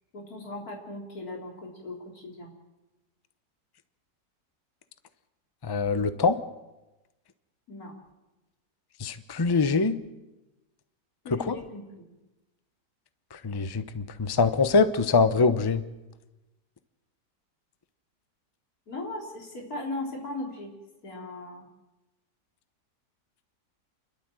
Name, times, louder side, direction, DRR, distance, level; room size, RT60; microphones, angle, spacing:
voice 1, 0.1-2.5 7.7-7.9 11.2-11.8 18.9-20.7 21.0-21.7, left 2 dB, 60° left, -1 dB, 4.0 m, -38 dB
voice 2, 5.6-6.4 9.0-10.0 11.3-11.6 13.3-15.8, left 4 dB, 25° left, 11 dB, 0.5 m, -24 dB
29.0 x 12.0 x 7.7 m, 1.1 s
omnidirectional pair, 1.7 m